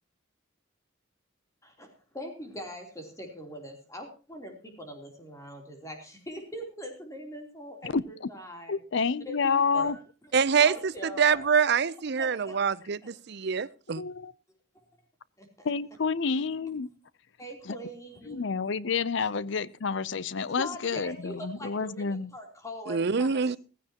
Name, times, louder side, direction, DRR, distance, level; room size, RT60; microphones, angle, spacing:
voice 1, 1.6-8.7 9.2-10.0 10.6-11.5 12.2-12.6 13.0-13.1 14.7-14.8 15.4-15.7 17.4-18.4 20.6-23.6, equal, 15° left, 3.3 m, -42 dB
voice 2, 7.8-8.3 8.7-10.0 14.0-14.3 15.6-16.9 17.7-17.8 18.3-22.3, left 5 dB, 60° left, 0.6 m, -29 dB
voice 3, 10.3-14.0 22.9-23.6, right 6 dB, 55° right, 0.6 m, -25 dB
16.0 x 15.5 x 2.9 m
head